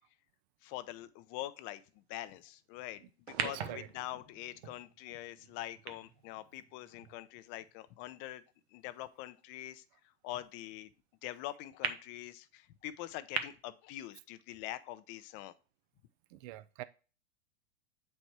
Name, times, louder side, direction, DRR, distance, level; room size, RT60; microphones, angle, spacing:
voice 1, 0.6-1.8 2.1-3.0 3.4-8.4 8.7-9.8 10.2-10.9 11.2-15.5, left 14 dB, 35° left, 0.5 m, -44 dB
sound 1, 3.2-7.7 8.4-8.5 11.8-11.9 13.3-13.4, right 7 dB, 75° right, 1.2 m, -41 dB
voice 2, 3.4-3.9 16.3-16.8, right 16 dB, 40° right, 0.4 m, -45 dB
7.8 x 4.3 x 4.6 m
supercardioid pair, 145°, 33 cm